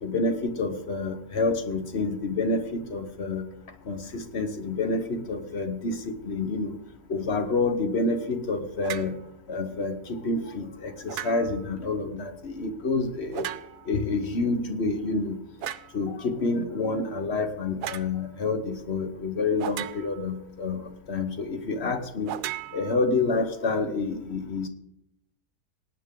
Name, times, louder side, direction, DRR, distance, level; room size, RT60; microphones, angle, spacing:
voice 1, 0.0-3.5 3.8-6.8 7.1-9.1 9.5-13.5 13.9-15.4 15.9-22.3 22.7-24.7, left 3 dB, 45° left, 8 dB, 1.2 m, -28 dB
sound 1, 8.8-9.2 11.1-11.7 13.3-14.0 15.6-16.0 17.8-18.1 19.6-20.3 22.3-23.4, right 12 dB, 75° right, 1.1 m, -36 dB
18.0 x 9.0 x 3.7 m, 0.80 s
omnidirectional pair, 1.7 m